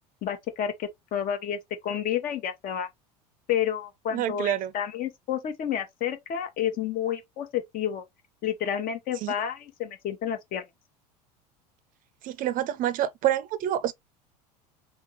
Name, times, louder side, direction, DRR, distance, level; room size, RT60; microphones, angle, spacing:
voice 1, 0.2-2.9 3.5-8.0 8.4-10.6, left 9 dB, 45° left, 1.1 m, -30 dB
voice 2, 4.1-4.7 9.2-9.3 12.2-13.9, right 12 dB, 40° right, 0.5 m, -27 dB
3.6 x 2.9 x 3.0 m
figure-of-eight pair, 75°, 21 cm